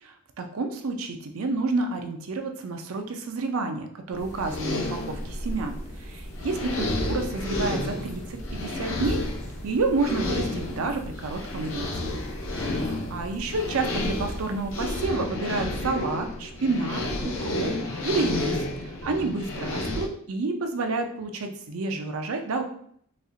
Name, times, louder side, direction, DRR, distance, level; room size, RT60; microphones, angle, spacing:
voice 1, 0.0-9.2 9.6-12.2 12.6-17.7 18.0-22.6, right 3 dB, 85° right, 5 dB, 0.5 m, -29 dB
sound 1, 4.1-20.1, left 2 dB, 70° left, 0.7 m, -31 dB
sound 2, 4.2-15.1, equal, 35° left, 0.6 m, -43 dB
4.2 x 2.4 x 2.6 m, 0.63 s
head